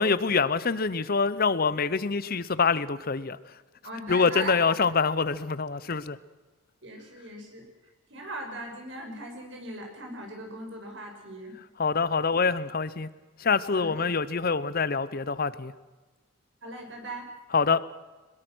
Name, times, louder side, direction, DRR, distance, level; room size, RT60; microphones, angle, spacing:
voice 1, 0.0-3.4 4.1-6.2 11.8-13.1 13.4-15.7 17.5-17.8, left 5 dB, 45° left, 17 dB, 0.7 m, -25 dB
voice 2, 3.8-4.7 6.8-7.7 8.1-11.6 13.7-14.1 16.6-17.3, right 1 dB, 60° right, 2 dB, 6.0 m, -39 dB
22.5 x 21.5 x 6.2 m, 1.2 s
head